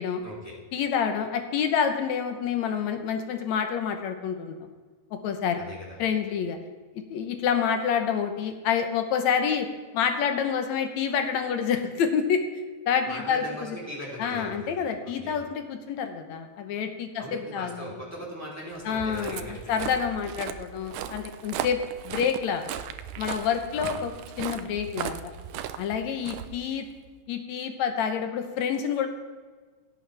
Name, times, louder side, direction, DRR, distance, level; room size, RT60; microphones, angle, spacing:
voice 1, 0.2-0.5 5.6-6.0 13.0-15.4 17.2-20.0 23.7-24.0, equal, 5° right, -5 dB, 3.7 m, -39 dB
voice 2, 0.7-4.6 5.2-5.6 6.0-6.6 7.1-9.7 9.9-12.4 12.9-13.4 14.2-18.0 18.9-21.8 22.0-22.7 23.2-25.3 25.8-26.9 27.3-29.1, left 7 dB, 75° left, 6 dB, 2.2 m, -28 dB
Walk footsteps, 18.8-27.1, right 10 dB, 85° right, 2.1 m, -37 dB
17.0 x 7.8 x 3.4 m, 1.4 s
omnidirectional pair, 3.4 m